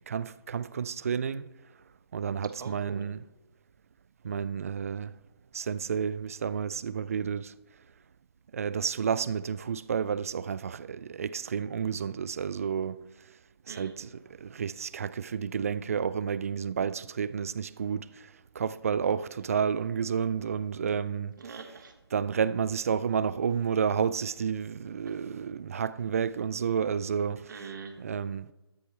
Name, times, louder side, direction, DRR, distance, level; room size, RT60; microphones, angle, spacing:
voice 1, 0.1-1.5 2.1-3.2 4.2-5.1 5.5-7.5 8.5-13.0 13.7-14.1 14.4-21.3 22.1-27.5 28.0-28.5, right 7 dB, 35° right, 0.3 m, -31 dB
voice 2, 2.6-3.0 13.7-13.9 21.4-21.9 27.5-28.0, right 5 dB, 50° right, 1.6 m, -42 dB
13.0 x 10.5 x 3.3 m
figure-of-eight pair, 150°, 13 cm